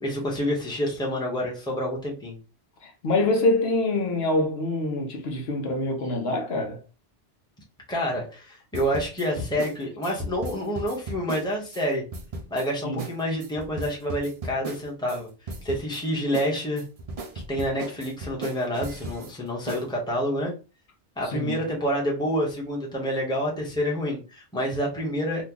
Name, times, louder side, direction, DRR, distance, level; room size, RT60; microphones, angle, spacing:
voice 1, 0.0-2.4 7.9-12.0 12.5-15.3 15.6-16.8 17.5-20.5 21.2-25.4, equal, 5° left, 0.9 m, -28 dB
voice 2, 2.8-6.8 12.8-13.0 21.2-21.6, left 2 dB, 70° left, 1.0 m, -25 dB
sound 1, 8.7-11.8 12.1-12.7 13.0-13.1 13.4-15.2 15.5-16.0 16.3-19.3 19.7-19.9, right 2 dB, 45° right, 0.5 m, -36 dB
3.0 x 2.3 x 3.6 m
omnidirectional pair, 1.1 m